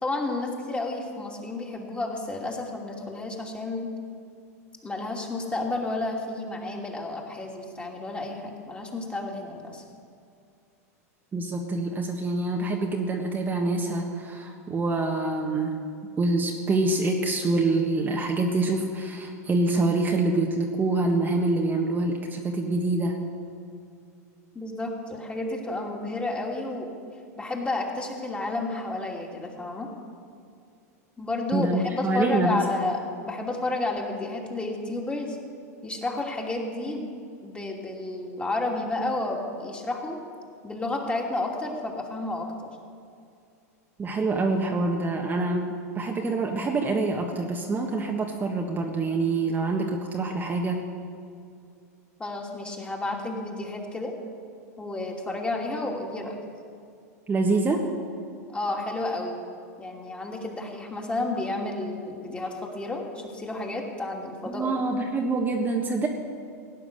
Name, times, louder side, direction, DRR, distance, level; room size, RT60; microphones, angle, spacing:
voice 1, 0.0-3.9 4.8-9.8 24.5-26.9 27.4-29.9 31.2-35.4 35.8-37.1 37.4-40.2 40.6-42.7 52.2-54.1 54.8-56.4 58.5-59.4 59.8-64.7, left 2 dB, 15° left, 0 dB, 2.7 m, -31 dB
voice 2, 11.3-15.8 16.2-23.2 31.5-32.6 44.0-45.7 45.9-50.8 57.3-57.9 64.4-66.1, right 2 dB, 20° right, 1 dB, 1.5 m, -26 dB
17.5 x 9.5 x 6.7 m, 2.3 s
hypercardioid pair, 105°, 9 cm